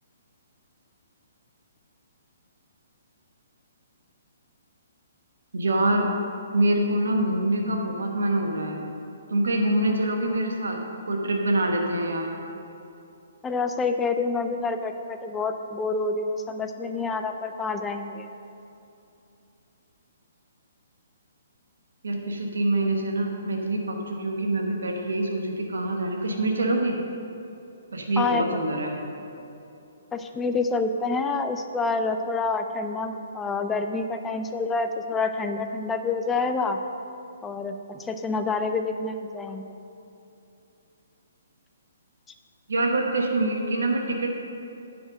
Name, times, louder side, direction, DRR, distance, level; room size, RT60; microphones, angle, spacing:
voice 1, 5.5-6.1 6.5-8.8 9.3-10.8 11.1-12.3 22.0-26.9 27.9-29.0 42.7-44.3, right 1 dB, 75° right, 2 dB, 1.1 m, -25 dB
voice 2, 13.4-18.3 28.2-28.6 30.1-36.8 37.4-39.8, left 4 dB, 10° left, 6 dB, 0.5 m, -28 dB
9.6 x 5.1 x 6.4 m, 2.8 s
figure-of-eight pair, 130°, 0 cm